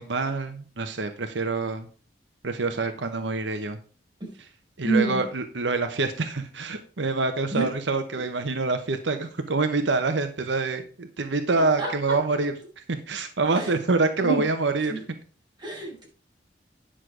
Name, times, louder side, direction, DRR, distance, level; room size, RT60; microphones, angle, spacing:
voice 1, 0.0-1.9 2.4-3.8 4.4-4.5 4.8-12.5 12.9-15.0, right 3 dB, 80° right, 8 dB, 0.9 m, -26 dB
voice 2, 4.8-5.2 7.5-7.7 11.8-12.2 13.5-13.7 14.2-14.4 14.9-15.0 15.6-16.0, right 3 dB, 25° right, -3 dB, 5.6 m, -27 dB
10.0 x 6.3 x 4.9 m, 0.39 s
head